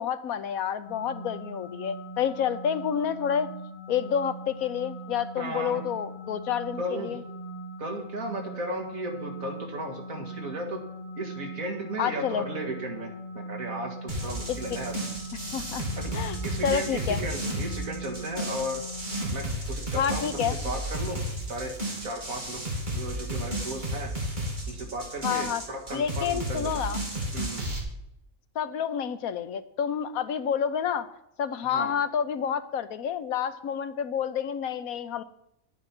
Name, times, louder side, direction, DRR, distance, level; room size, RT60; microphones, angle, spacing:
voice 1, 0.0-3.5 3.9-7.2 12.0-12.5 14.5-14.6 15.5-15.8 16.1-16.4 16.6-17.2 19.9-20.6 25.2-25.6 25.9-27.0 28.6-31.1 31.4-35.2, left 8 dB, 80° left, 12 dB, 1.2 m, -29 dB
sound 1, 0.9-19.3, right 1 dB, 10° left, 4.4 m, -40 dB
voice 2, 5.4-5.8 6.8-7.2 7.8-10.8 11.1-14.9 16.0-16.1 16.4-18.8 19.3-21.2 21.5-21.7 22.0-24.1 24.7-26.8 27.3-27.6 31.7-31.9, right 1 dB, 75° right, 2 dB, 2.5 m, -35 dB
sound 2, 14.1-27.8, right 1 dB, 35° right, 2.5 m, -33 dB
11.0 x 9.0 x 5.9 m, 0.81 s
omnidirectional pair, 1.5 m